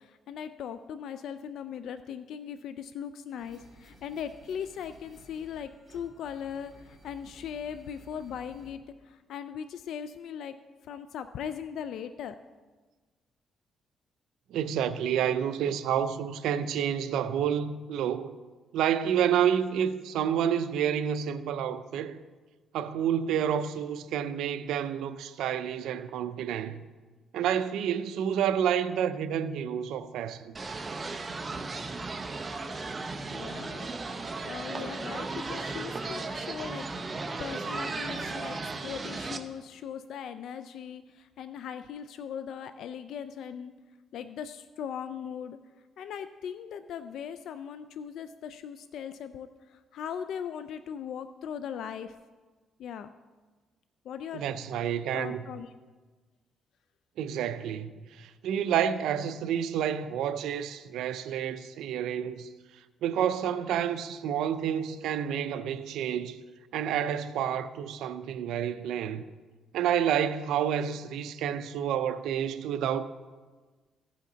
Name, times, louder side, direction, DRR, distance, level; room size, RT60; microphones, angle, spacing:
voice 1, 0.0-10.5 10.9-12.4 33.3-33.9 34.4-43.7 44.1-45.6 46.0-52.1 52.8-53.1 54.1-54.4 55.1-55.7, left 8 dB, 75° left, 0.3 m, -39 dB
sound 1, 3.4-8.7, right 1 dB, 15° right, 3.1 m, -55 dB
voice 2, 14.5-18.4 18.7-22.2 22.7-26.8 27.3-30.5 54.3-55.4 57.2-62.5 63.0-66.4 66.7-69.2 69.7-73.0, right 9 dB, 85° right, 0.5 m, -29 dB
sound 2, 30.5-39.4, right 3 dB, 30° right, 0.7 m, -35 dB
15.0 x 5.7 x 3.9 m
cardioid pair, 90°, 0 cm